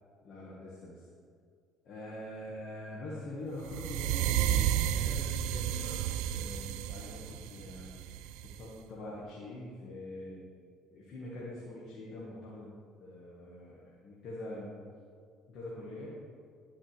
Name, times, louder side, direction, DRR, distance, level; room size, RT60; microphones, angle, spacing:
voice 1, 0.2-1.1 1.8-7.9 8.4-10.4 10.9-12.7 13.0-14.9 15.5-16.1, left 1 dB, 55° left, -6 dB, 1.8 m, -44 dB
sound 1, 3.6-8.7, right 11 dB, 75° right, 0.3 m, -32 dB
10.5 x 8.2 x 3.4 m, 2.2 s
hypercardioid pair, 60°, 0 cm